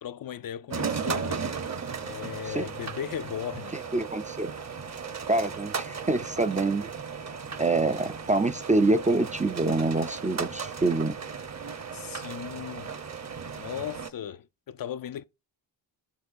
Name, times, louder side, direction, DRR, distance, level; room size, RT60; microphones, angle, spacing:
voice 1, 0.0-1.4 2.0-3.8 11.9-13.0 13.6-15.2, left 9 dB, 55° left, 0.5 m, -37 dB
sound 1, 0.7-14.1, right 5 dB, 35° right, 0.8 m, -36 dB
voice 2, 3.9-4.5 5.3-6.9 7.6-11.2, right 2 dB, 20° right, 0.4 m, -26 dB
12.0 x 6.8 x 2.5 m
cardioid pair, 80°, 44 cm